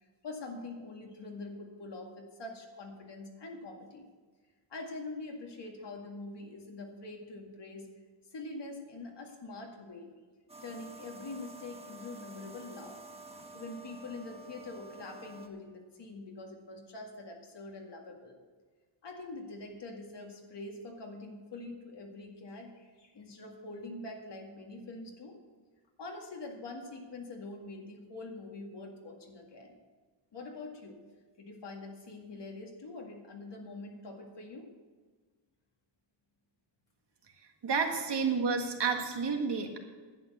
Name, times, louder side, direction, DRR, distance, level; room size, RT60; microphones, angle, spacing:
voice 1, 0.2-4.1 4.7-7.9 8.3-10.1 10.6-13.0 13.5-18.4 19.0-25.4 26.0-29.8 30.3-31.0 31.4-34.7, left 2 dB, 60° left, 1 dB, 2.2 m, -44 dB
sound 1, 10.5-15.5, right 2 dB, 10° right, 1.3 m, -49 dB
voice 2, 37.6-39.8, right 5 dB, 60° right, 3 dB, 1.8 m, -30 dB
11.0 x 8.9 x 6.8 m, 1.4 s
wide cardioid pair, 125°, 48 cm